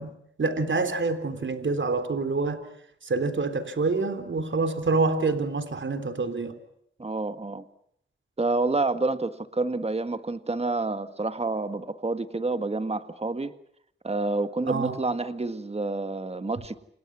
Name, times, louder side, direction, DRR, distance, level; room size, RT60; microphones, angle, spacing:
voice 1, 0.0-2.7 3.0-6.6 14.7-15.0, right 3 dB, 65° right, 9 dB, 3.6 m, -27 dB
voice 2, 7.0-7.7 8.4-13.5 14.0-16.8, right 3 dB, 30° right, 10 dB, 1.8 m, -28 dB
29.0 x 28.0 x 6.1 m, 0.70 s
cardioid pair, 55°, 21 cm